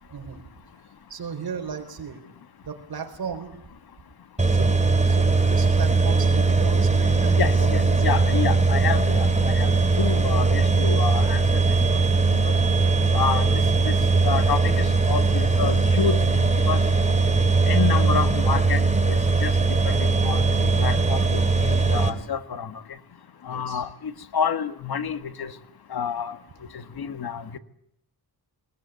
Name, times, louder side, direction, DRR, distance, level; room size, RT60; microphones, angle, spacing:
voice 1, 0.1-0.4 1.1-2.3 2.6-3.6 4.5-8.1 8.5-8.6 10.0-10.2 23.5-23.8, right 6 dB, 65° right, 5 dB, 4.4 m, -36 dB
sound 1, 4.4-22.1, right 4 dB, 15° right, 3.7 m, -20 dB
voice 2, 7.4-9.7 10.0-11.4 12.3-12.5 13.1-13.5 13.9-14.0 14.2-16.8 17.7-18.8 19.1-22.7 23.5-23.9 24.3-25.5 25.9-26.4 26.7-27.6, left 7 dB, 65° left, 10 dB, 1.7 m, -29 dB
21.0 x 20.5 x 9.4 m, 0.73 s
cardioid pair, 95°, 39 cm